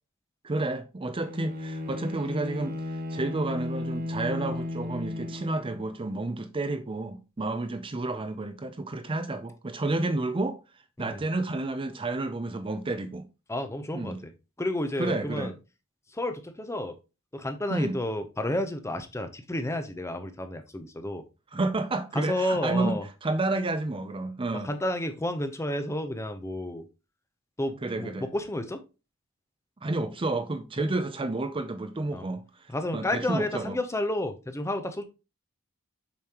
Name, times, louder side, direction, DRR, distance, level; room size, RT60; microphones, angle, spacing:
voice 1, 0.4-10.6 11.0-13.3 13.9-14.2 15.0-15.5 17.7-18.0 21.5-24.7 27.8-28.3 29.8-32.4 32.9-33.8, right 2 dB, 25° right, 0.5 m, -30 dB
Bowed string instrument, 1.2-6.0, left 2 dB, 45° right, 1.0 m, -34 dB
voice 2, 13.5-14.3 14.6-15.5 16.1-17.0 17.3-21.2 22.1-23.1 24.5-26.9 27.6-28.8 30.8-30.9 32.1-32.3 32.7-35.0, left 1 dB, 15° left, 0.7 m, -31 dB
7.1 x 5.0 x 3.0 m
head